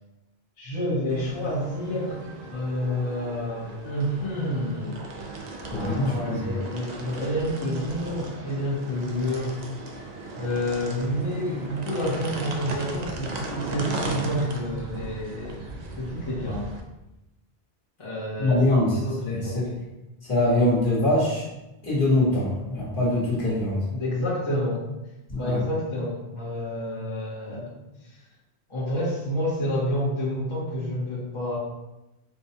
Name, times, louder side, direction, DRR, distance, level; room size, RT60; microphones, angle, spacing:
voice 1, 0.6-2.2 2.5-4.9 5.7-9.6 10.4-15.6 16.0-16.6 18.0-18.6 18.9-19.7 23.9-24.9 25.3-27.8 28.7-31.6, equal, 30° left, -7 dB, 0.9 m, -29 dB
sound 1, 1.1-16.8, right 3 dB, 55° right, 0.5 m, -37 dB
voice 2, 5.7-6.6 18.4-19.0 19.3-19.8 20.3-21.4 21.8-23.8 25.3-25.6, left 1 dB, 55° left, -7 dB, 1.5 m, -23 dB
4.7 x 2.2 x 2.8 m, 0.96 s
omnidirectional pair, 1.1 m